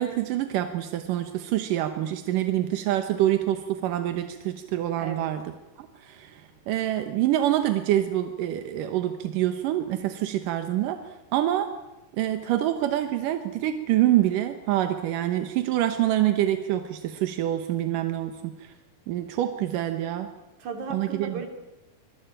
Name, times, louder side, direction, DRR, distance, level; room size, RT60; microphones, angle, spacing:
voice 1, 0.0-5.4 5.8-11.7 12.1-18.7 19.1-20.3 20.9-21.4, right 13 dB, 65° right, 8 dB, 2.2 m, -26 dB
voice 2, 5.0-5.3 20.6-21.5, right 5 dB, 45° right, 5 dB, 4.2 m, -35 dB
25.5 x 21.5 x 9.0 m, 1.0 s
omnidirectional pair, 4.9 m